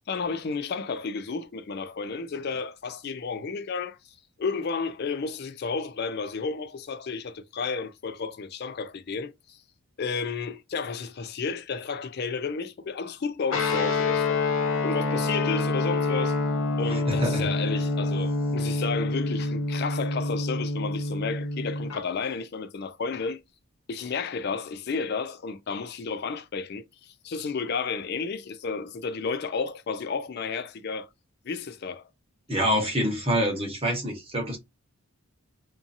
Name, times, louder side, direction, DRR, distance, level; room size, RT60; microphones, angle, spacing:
voice 1, 0.1-4.0 4.4-9.6 10.0-14.4 14.8-16.4 16.8-23.4 23.9-31.1 31.4-32.0, left 5 dB, 45° left, 0.4 m, -32 dB
Guitar, 13.5-22.0, left 2 dB, 65° left, 0.7 m, -27 dB
voice 2, 16.9-17.5 32.5-34.6, equal, 25° right, 1.1 m, -26 dB
2.6 x 2.6 x 2.5 m
head